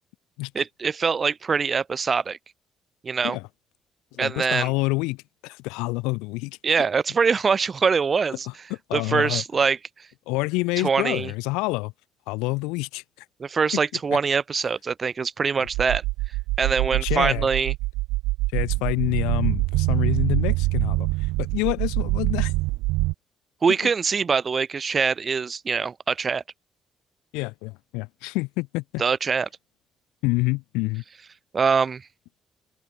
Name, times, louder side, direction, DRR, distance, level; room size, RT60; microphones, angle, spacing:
voice 1, 0.5-2.4 3.0-3.4 4.2-4.7 6.6-8.5 8.9-9.8 10.8-11.3 13.4-16.0 16.6-17.7 23.6-26.4 29.0-29.5 31.5-32.1, right 5 dB, 40° right, 0.8 m, -23 dB
voice 2, 4.1-6.6 8.7-9.4 10.3-11.9 12.3-13.0 16.8-17.5 18.5-22.5 27.3-29.0 30.2-31.0, left 24 dB, 75° left, 0.8 m, -27 dB
sound 1, 15.7-23.1, right 22 dB, 70° right, 0.4 m, -24 dB
figure-of-eight pair, 45°, 0 cm